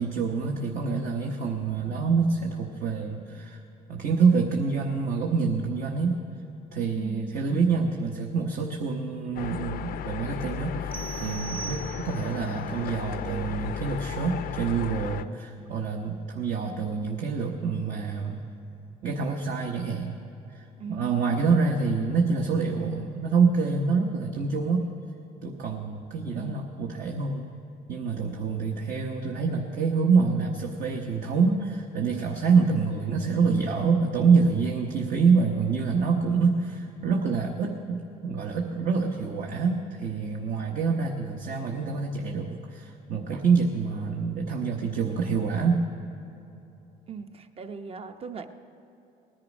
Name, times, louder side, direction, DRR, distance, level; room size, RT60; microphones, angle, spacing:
voice 1, 0.0-3.6 3.9-6.2 6.7-18.4 19.0-20.2 20.5-24.9 25.4-27.5 27.9-45.9, right 5 dB, 55° right, 1 dB, 1.1 m, -26 dB
voice 2, 6.9-7.3 20.8-21.3 26.4-26.6 47.1-48.5, right 5 dB, 35° right, 8 dB, 0.9 m, -38 dB
sound 1, 9.4-15.3, left 8 dB, 60° left, 0.5 m, -35 dB
sound 2, 10.9-12.4, right 6 dB, 10° left, 0.7 m, -40 dB
19.0 x 10.5 x 5.2 m, 3.0 s
cardioid pair, 110°, 17 cm